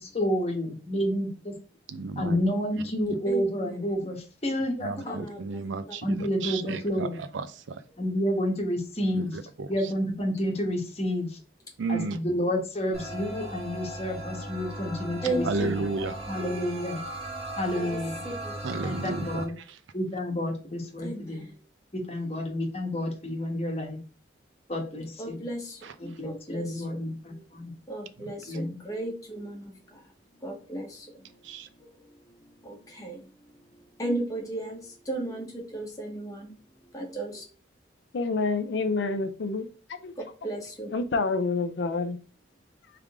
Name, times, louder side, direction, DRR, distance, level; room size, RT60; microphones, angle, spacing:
voice 1, 0.0-1.5 2.2-5.2 6.0-7.2 8.0-9.4 9.7-11.4 11.9-15.9 16.3-17.0 17.6-18.2 18.8-19.5 19.9-21.4 21.9-24.0 24.7-25.4 26.0-27.7 28.5-28.8, equal, 35° left, 1.1 m, -30 dB
voice 2, 1.9-2.4 4.8-7.1 7.3-7.8 9.1-9.7 11.8-12.2 15.4-16.1 18.6-19.4 25.8-25.9 31.4-31.7, right 4 dB, 90° right, 0.5 m, -33 dB
voice 3, 3.3-3.8 5.0-5.6 7.9-8.0 12.0-12.1 15.2-16.3 17.7-18.0 18.2-18.6 21.0-21.6 25.2-27.0 27.3-30.0 30.4-31.4 31.8-37.4 40.2-40.9, right 1 dB, 20° left, 1.0 m, -36 dB
sound 1, 12.9-19.4, right 1 dB, 35° right, 1.5 m, -37 dB
voice 4, 38.1-39.7 40.0-40.1 40.9-42.2, left 3 dB, 75° left, 0.5 m, -27 dB
3.6 x 3.3 x 3.5 m
head